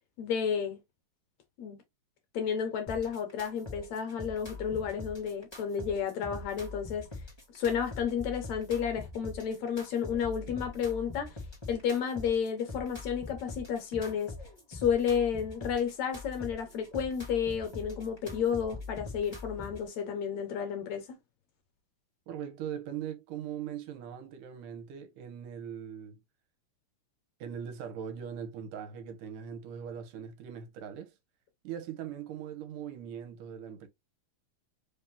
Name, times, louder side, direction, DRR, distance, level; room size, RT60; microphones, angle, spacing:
voice 1, 0.2-0.8 1.6-1.8 2.3-7.1 7.5-11.4 11.7-14.3 14.7-21.1, left 7 dB, 70° left, 1.9 m, -31 dB
sound 1, 2.9-19.9, left 3 dB, 30° left, 0.5 m, -43 dB
voice 2, 22.3-26.2 27.4-31.1 31.6-33.9, right 8 dB, 75° right, 2.4 m, -40 dB
5.1 x 3.5 x 2.7 m
omnidirectional pair, 3.9 m